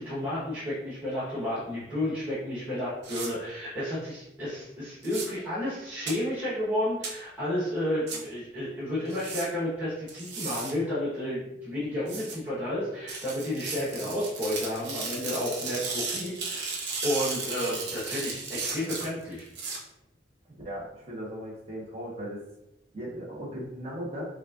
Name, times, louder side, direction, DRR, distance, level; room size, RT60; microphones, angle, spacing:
voice 1, 0.0-19.5, left 1 dB, 10° right, -12 dB, 1.2 m, -31 dB
sound 1, 3.0-3.3 5.0-5.3 6.1-6.2 7.0-7.1 8.1-8.2 9.1-9.5 10.1-10.7 12.1-12.3 13.1-19.8, right 4 dB, 70° right, 0.9 m, -35 dB
voice 2, 20.5-22.4 22.9-24.2, equal, 35° right, -5 dB, 1.2 m, -37 dB
5.2 x 2.5 x 2.5 m, 0.89 s
head